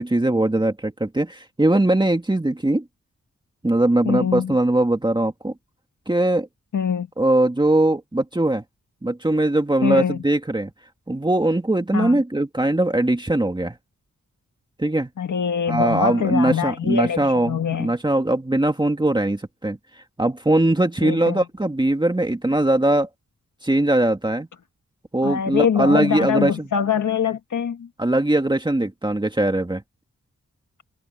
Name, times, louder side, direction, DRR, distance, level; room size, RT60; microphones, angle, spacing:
voice 1, 0.0-2.8 3.6-5.5 6.1-6.5 7.2-8.6 9.0-10.7 11.1-13.8 14.8-15.1 15.7-23.1 23.6-24.5 25.1-26.7 28.0-29.8, right 1 dB, 15° right, 2.0 m, -21 dB
voice 2, 4.0-4.6 6.7-7.1 9.8-10.2 11.9-12.2 15.2-17.9 21.0-21.4 25.2-27.9, left 7 dB, 80° left, 1.5 m, -23 dB
wide cardioid pair, 85°, 30 cm